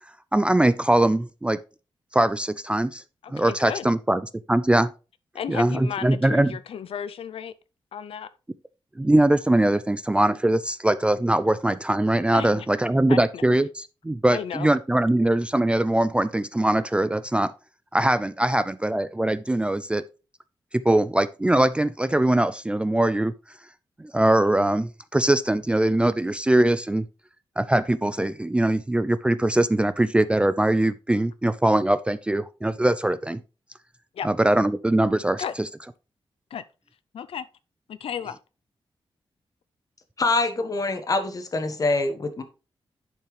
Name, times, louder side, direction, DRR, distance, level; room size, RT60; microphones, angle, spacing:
voice 1, 0.3-1.6 2.1-3.0 3.3-4.2 4.5-4.9 5.5-6.6 9.0-17.5 17.9-20.0 20.8-23.3 24.0-27.1 27.6-33.4 34.2-35.7, right 1 dB, 10° right, 0.3 m, -22 dB
voice 2, 3.2-3.9 5.3-7.5 7.9-8.3 12.3-12.7 13.1-13.4 14.3-14.7 34.1-34.3 35.4-35.5 36.5-36.6 37.1-37.4 37.9-38.4, left 8 dB, 85° left, 0.5 m, -33 dB
voice 3, 40.2-42.4, left 2 dB, 40° left, 1.2 m, -25 dB
10.5 x 5.6 x 3.2 m
wide cardioid pair, 135°, 9 cm